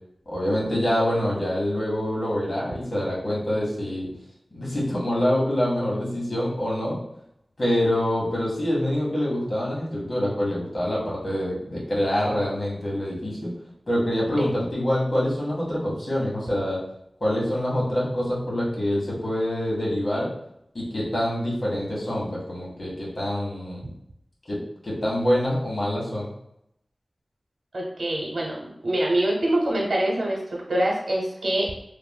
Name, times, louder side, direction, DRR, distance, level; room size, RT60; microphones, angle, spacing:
voice 1, 0.3-4.1 4.5-7.0 7.6-13.5 13.9-16.8 17.2-20.3 20.7-23.8 24.5-24.6 24.8-26.3, left 1 dB, 60° left, -6 dB, 1.2 m, -25 dB
voice 2, 27.7-30.4 30.7-31.7, right 1 dB, 85° right, -2 dB, 0.8 m, -24 dB
3.1 x 2.5 x 2.2 m, 0.77 s
wide cardioid pair, 70°, 0 cm